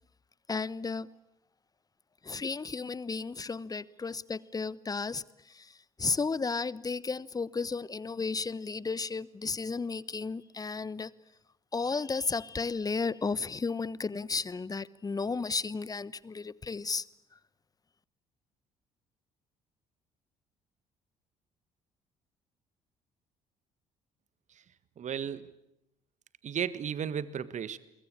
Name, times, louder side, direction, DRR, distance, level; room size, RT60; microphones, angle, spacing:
voice 1, 0.5-1.1 2.2-11.1 11.7-17.0, left 4 dB, 20° left, 1.0 m, -33 dB
voice 2, 25.0-25.5 26.4-27.8, right 8 dB, 45° right, 1.6 m, -34 dB
30.0 x 23.0 x 8.6 m
figure-of-eight pair, 50°, 18 cm